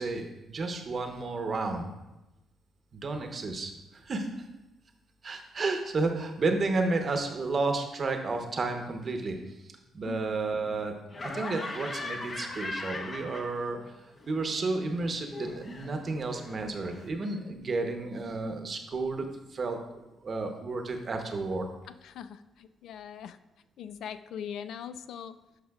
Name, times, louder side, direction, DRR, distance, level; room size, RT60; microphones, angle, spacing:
voice 1, 0.0-1.9 2.9-4.3 5.2-9.4 9.9-10.9 11.2-13.8 14.3-21.6, right 3 dB, 45° right, 5 dB, 0.9 m, -32 dB
voice 2, 10.0-10.4 21.9-23.4 23.8-25.4, left 8 dB, 75° left, 12 dB, 0.3 m, -41 dB
Laughter, 11.1-13.9 14.2-17.1, left 2 dB, 40° left, 0.9 m, -40 dB
11.5 x 5.1 x 2.4 m, 1.0 s
cardioid pair, 95°, 0 cm